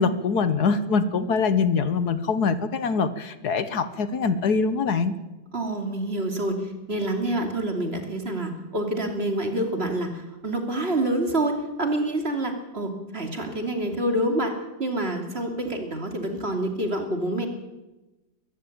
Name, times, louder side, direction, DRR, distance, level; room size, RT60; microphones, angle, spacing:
voice 1, 0.0-5.1, left 5 dB, 65° left, 13 dB, 1.6 m, -23 dB
voice 2, 5.5-14.5 14.8-17.5, right 1 dB, 35° right, 5 dB, 3.1 m, -27 dB
23.0 x 14.5 x 8.7 m, 1.1 s
omnidirectional pair, 1.8 m